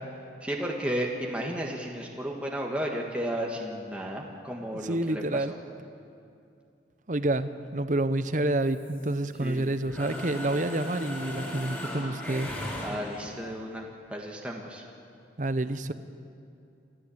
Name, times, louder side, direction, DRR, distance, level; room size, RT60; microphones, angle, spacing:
voice 1, 0.4-5.6 9.4-9.7 12.8-14.8, equal, 5° right, -1 dB, 1.5 m, -33 dB
voice 2, 4.7-5.5 7.1-12.5 15.4-15.9, right 2 dB, 40° right, 12 dB, 0.8 m, -28 dB
Mechanisms, 8.6-9.6 9.9-13.4, left 1 dB, 10° left, 4.8 m, -37 dB
27.5 x 14.0 x 8.6 m, 2.5 s
head